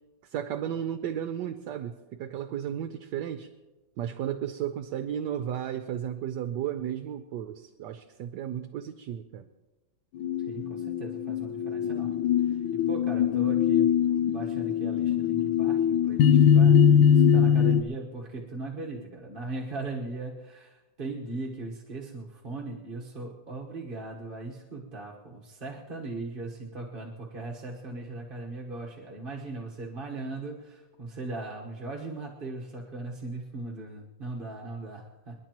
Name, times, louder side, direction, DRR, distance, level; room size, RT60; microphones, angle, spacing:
voice 1, 0.2-3.5 4.0-9.5, right 10 dB, 70° right, 8 dB, 1.2 m, -34 dB
sound 1, 10.2-17.8, left 8 dB, 90° left, 1.5 m, -22 dB
voice 2, 10.4-13.9 14.3-35.3, right 2 dB, 30° right, -3 dB, 1.3 m, -39 dB
29.0 x 11.0 x 3.0 m, 1.2 s
omnidirectional pair, 2.1 m